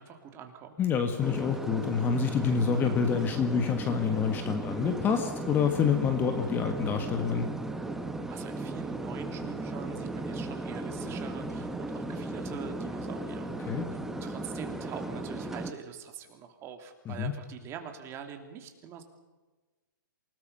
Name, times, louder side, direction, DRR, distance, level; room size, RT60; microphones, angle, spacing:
voice 1, 0.0-0.8 8.3-13.5 14.2-19.0, right 7 dB, 20° right, 6 dB, 2.8 m, -44 dB
voice 2, 0.8-7.5 13.7-13.9 17.0-17.3, left 6 dB, 15° left, 7 dB, 1.6 m, -27 dB
sound 1, 1.2-15.7, right 2 dB, 5° right, 1.1 m, -36 dB
28.0 x 18.5 x 5.6 m, 1.2 s
hypercardioid pair, 140°, 11 cm